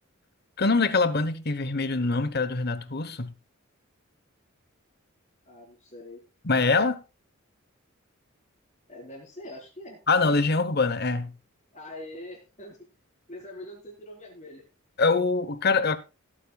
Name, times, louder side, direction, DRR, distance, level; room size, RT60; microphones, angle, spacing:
voice 1, 0.6-3.3 6.4-7.0 10.1-11.3 15.0-16.0, left 3 dB, 50° left, 1.1 m, -24 dB
voice 2, 5.5-6.2 8.9-10.0 11.7-12.8 13.3-14.6, left 1 dB, 35° left, 4.3 m, -43 dB
17.0 x 8.7 x 2.4 m
head